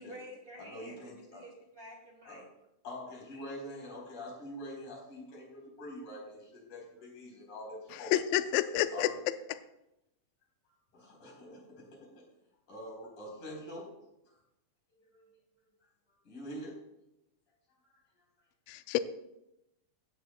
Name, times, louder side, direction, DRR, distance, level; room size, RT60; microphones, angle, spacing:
voice 1, 0.0-2.4, equal, 55° right, -1 dB, 1.3 m, -50 dB
voice 2, 0.6-1.4 2.3-2.5 2.8-8.4 8.9-9.2 10.9-11.9 12.7-13.9 15.0-15.2 16.2-16.8, left 1 dB, 70° left, -2 dB, 5.3 m, -45 dB
voice 3, 8.1-9.1 18.7-19.0, left 13 dB, 90° left, 11 dB, 1.4 m, -28 dB
16.0 x 12.0 x 2.2 m, 0.88 s
omnidirectional pair, 3.5 m